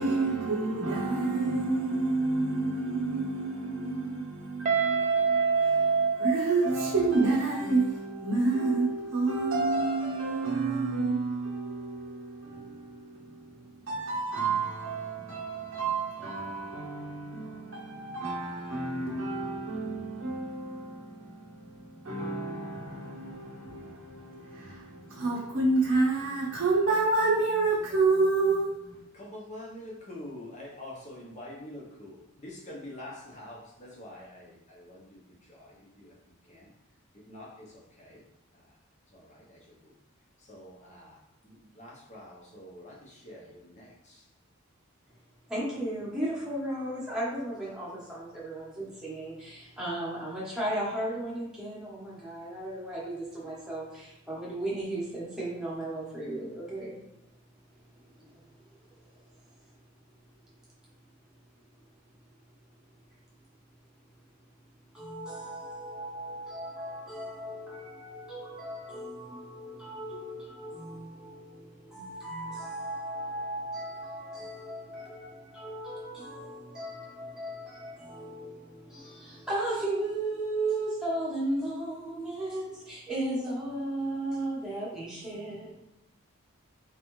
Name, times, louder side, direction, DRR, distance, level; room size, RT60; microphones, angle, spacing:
voice 1, 0.0-28.9, right 3 dB, 60° right, 0.7 m, -29 dB
Guitar, 4.6-7.5, right 5 dB, 35° right, 0.4 m, -26 dB
voice 2, 29.1-36.2 36.5-36.7 37.3-38.2 38.5-38.6 39.1-39.9 40.4-44.2, left 1 dB, 30° left, 0.9 m, -46 dB
voice 3, 45.5-57.0 58.1-58.4 58.7-59.0 64.9-85.8, right 1 dB, 5° right, 1.1 m, -35 dB
3.5 x 3.2 x 3.1 m
head